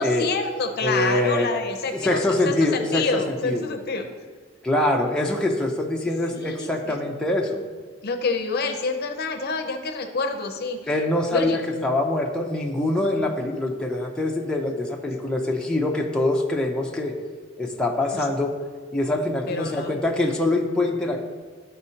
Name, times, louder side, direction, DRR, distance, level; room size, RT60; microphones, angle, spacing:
voice 1, 0.0-4.1 6.3-7.0 8.0-10.8 11.3-11.6 19.5-20.0, left 3 dB, 50° left, 5 dB, 0.6 m, -27 dB
voice 2, 0.8-1.5 1.9-3.7 4.6-7.6 10.9-17.2 17.6-18.5 18.9-21.3, left 2 dB, 5° left, -1 dB, 0.6 m, -24 dB
12.0 x 4.3 x 2.8 m, 1.5 s
head